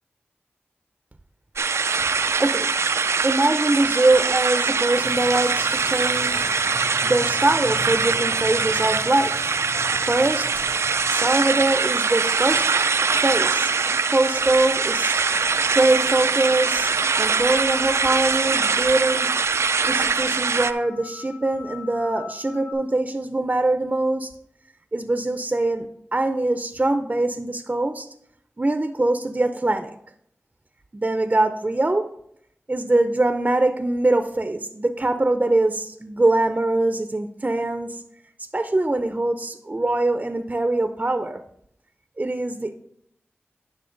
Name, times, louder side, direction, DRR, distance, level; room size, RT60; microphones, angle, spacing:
sound 1, 1.6-20.7, right 5 dB, 85° right, 0.4 m, -23 dB
voice 1, 3.2-6.5 7.0-9.5 10.1-10.6 11.1-12.7 13.2-13.7 14.1-15.2 15.7-16.9 17.2-19.3 19.9-24.3 24.9-28.1 28.6-29.9 30.9-32.1 32.7-38.0 38.5-41.4 42.2-42.8, right 2 dB, 35° right, 8 dB, 0.6 m, -23 dB
sound 2, 4.9-22.7, left 2 dB, 90° left, 3.9 m, -41 dB
10.0 x 5.9 x 3.9 m, 0.71 s
wide cardioid pair, 50°, 5 cm